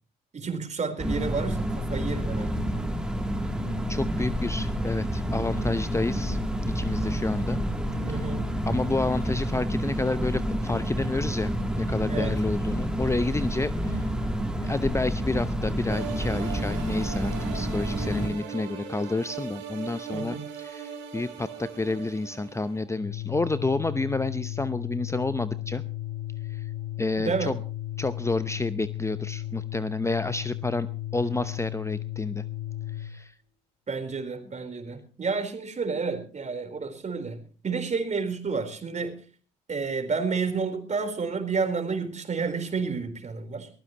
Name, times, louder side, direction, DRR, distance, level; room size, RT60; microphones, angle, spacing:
voice 1, 0.3-2.6 8.0-8.5 12.1-12.3 20.1-20.5 27.2-27.5 33.9-39.1 39.7-43.7, right 5 dB, 40° right, 7 dB, 4.0 m, -30 dB
sound 1, 1.0-18.3, equal, 5° right, 2.8 m, -29 dB
voice 2, 3.9-6.4 6.7-7.6 8.7-11.5 11.8-14.1 14.6-25.8 26.5-26.7 27.0-27.6 28.0-30.9 31.1-32.4 33.0-33.3, left 2 dB, 15° left, 13 dB, 0.8 m, -29 dB
sound 2, 15.9-22.8, right 7 dB, 80° right, 3.7 m, -39 dB
Organ, 22.9-33.2, left 14 dB, 50° left, 3.9 m, -35 dB
22.0 x 15.0 x 3.0 m, 0.40 s
hypercardioid pair, 60°, 19 cm